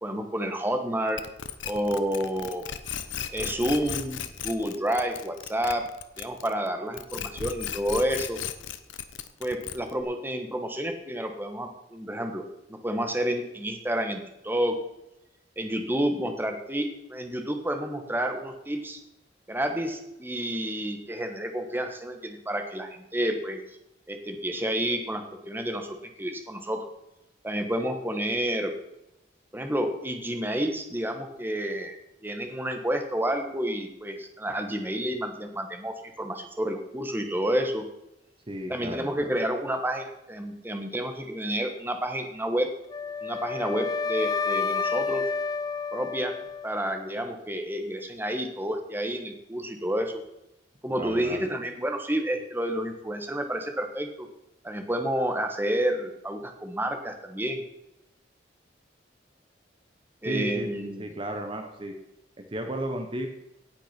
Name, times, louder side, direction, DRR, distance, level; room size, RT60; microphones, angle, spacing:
voice 1, 0.0-1.2 1.6-2.6 3.3-5.8 6.2-8.4 9.4-12.4 12.7-14.8 15.6-19.0 19.5-23.8 24.1-26.9 27.4-28.7 29.5-37.9 38.7-42.7 43.2-45.2 45.9-46.3 46.6-50.2 50.8-54.3 54.6-57.6 60.2-61.0, right 1 dB, 10° right, 5 dB, 1.2 m, -30 dB
sound 1, 1.2-6.7 6.9-10.0, left 8 dB, 90° left, 0.8 m, -35 dB
voice 2, 38.5-39.3 50.9-51.5 60.2-61.9 62.4-63.3, right 1 dB, 30° right, 5 dB, 1.1 m, -34 dB
Wind instrument woodwind instrument, 42.9-47.0, left 5 dB, 20° left, 0.4 m, -30 dB
17.0 x 5.9 x 5.9 m, 0.87 s
head